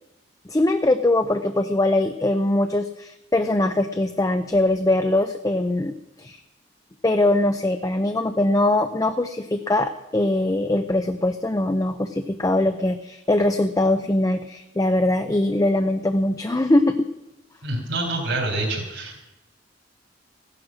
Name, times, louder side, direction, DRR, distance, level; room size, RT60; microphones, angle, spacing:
voice 1, 0.5-6.4 7.0-17.1, left 1 dB, 20° left, 8 dB, 0.6 m, -22 dB
voice 2, 17.6-19.2, right 2 dB, 70° right, -2 dB, 3.6 m, -26 dB
15.0 x 11.0 x 6.3 m, 0.93 s
head